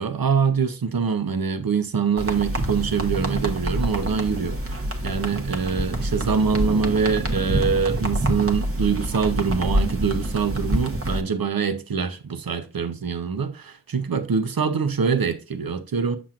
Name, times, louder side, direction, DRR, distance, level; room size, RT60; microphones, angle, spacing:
voice 1, 0.0-16.2, right 6 dB, 55° right, 0.9 m, -24 dB
sound 1, 2.2-11.2, right 1 dB, 30° right, 1.0 m, -26 dB
7.2 x 5.9 x 2.5 m
cardioid pair, 45°, 41 cm